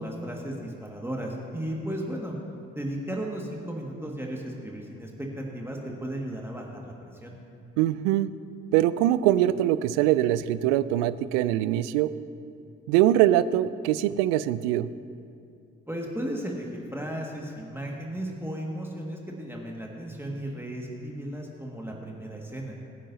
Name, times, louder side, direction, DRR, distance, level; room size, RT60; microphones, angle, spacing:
voice 1, 0.0-2.4 2.7-6.9 7.2-7.3 15.9-22.8, right 1 dB, 5° right, -2 dB, 1.9 m, -35 dB
voice 2, 7.8-8.3 8.7-12.1 12.9-14.9, right 13 dB, 75° right, 16 dB, 0.5 m, -23 dB
23.0 x 9.9 x 2.8 m, 2.5 s
hypercardioid pair, 40°, 35 cm